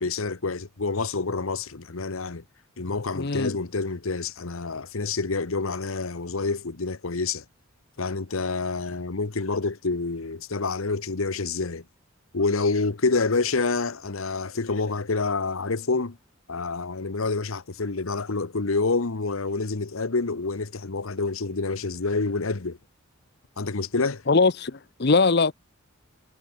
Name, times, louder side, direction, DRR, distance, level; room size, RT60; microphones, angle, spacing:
voice 1, 0.0-2.4 2.8-7.4 8.0-11.8 12.3-16.2 16.5-22.8 23.6-24.2, left 3 dB, 80° left, 1.1 m, -27 dB
voice 2, 3.1-3.5 24.3-25.5, left 4 dB, 50° left, 0.8 m, -21 dB
head